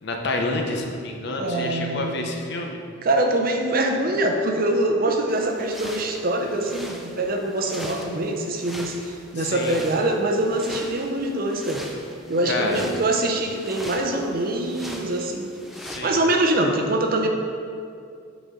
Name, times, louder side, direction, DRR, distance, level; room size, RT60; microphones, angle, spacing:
voice 1, 0.0-2.8 9.4-9.8 12.4-12.8 15.7-16.2, left 2 dB, 60° left, 2 dB, 0.7 m, -28 dB
voice 2, 1.4-2.1 3.0-11.8 12.3-15.5 16.0-17.3, right 1 dB, 50° right, 3 dB, 0.6 m, -24 dB
sound 1, 5.3-16.0, equal, ahead, 0.4 m, -41 dB
8.0 x 4.1 x 3.7 m, 2.4 s
head